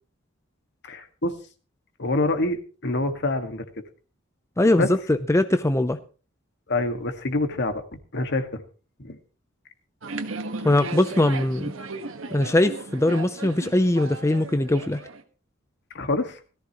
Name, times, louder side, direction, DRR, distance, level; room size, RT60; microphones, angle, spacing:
voice 1, 0.8-1.3 2.0-3.6 4.8-4.9 6.7-7.8 8.1-8.6 9.0-9.2 15.9-16.4, left 2 dB, 60° left, 7 dB, 1.8 m, -26 dB
voice 2, 4.6-6.0 10.6-11.7 12.3-15.0, left 1 dB, 15° left, 10 dB, 0.6 m, -21 dB
sound 1, 10.0-15.2, right 3 dB, 70° right, 1.5 m, -36 dB
17.5 x 14.5 x 3.0 m, 0.36 s
head